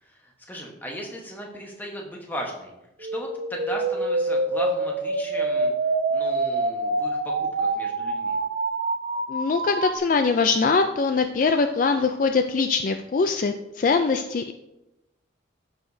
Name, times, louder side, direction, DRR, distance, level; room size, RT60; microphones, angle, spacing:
voice 1, 0.0-2.7 3.0-5.7 6.1-8.4, equal, 10° left, 0 dB, 1.1 m, -37 dB
sound 1, 3.0-10.0, right 2 dB, 50° right, 0.7 m, -26 dB
voice 2, 9.3-14.5, left 4 dB, 45° left, 6 dB, 0.3 m, -22 dB
13.5 x 4.8 x 2.7 m, 0.94 s
head